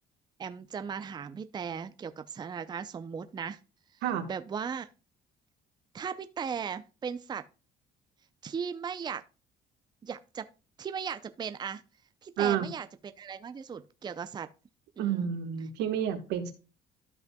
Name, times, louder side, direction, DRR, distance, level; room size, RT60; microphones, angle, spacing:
voice 1, 0.4-3.6 4.3-4.9 5.9-7.4 8.4-9.2 10.0-10.5 10.8-11.8 12.2-12.9 13.2-14.5 15.0-15.2, right 7 dB, 25° right, 0.5 m, -37 dB
voice 2, 12.4-12.7 15.0-16.5, right 9 dB, 90° right, 1.3 m, -29 dB
13.0 x 5.4 x 2.2 m
cardioid pair, 110°, 17 cm